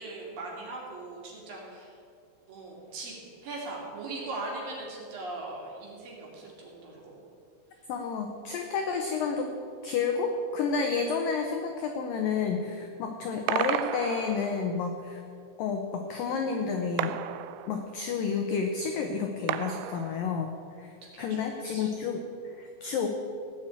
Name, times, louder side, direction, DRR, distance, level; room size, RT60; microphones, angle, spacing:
voice 1, 0.0-1.9 2.5-3.2 3.4-7.3 21.1-21.9, right 2 dB, 55° right, -2 dB, 3.9 m, -40 dB
voice 2, 7.9-9.5 9.8-15.2 15.6-17.2 17.7-23.1, left 5 dB, 85° left, 4 dB, 1.9 m, -30 dB
sound 1, 13.5-14.9 17.0-18.2 19.5-20.6, right 12 dB, 90° right, 3.0 m, -34 dB
17.5 x 6.1 x 8.7 m, 2.3 s
omnidirectional pair, 5.3 m